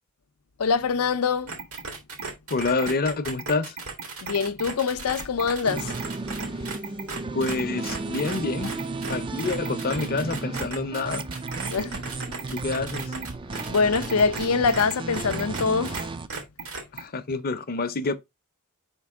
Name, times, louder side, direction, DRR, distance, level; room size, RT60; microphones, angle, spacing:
voice 1, 0.6-1.6 4.2-5.9 6.5-6.7 11.7-12.0 13.7-16.1, left 5 dB, 85° left, 0.6 m, -24 dB
sound 1, 1.5-16.0 16.3-17.0, right 4 dB, 75° right, 1.9 m, -35 dB
voice 2, 2.5-3.8 7.3-8.7 9.1-11.2 12.5-13.1 16.9-18.1, left 3 dB, 45° left, 0.6 m, -27 dB
sound 2, 5.6-16.3, right 3 dB, 20° right, 0.4 m, -34 dB
5.2 x 5.1 x 3.5 m
head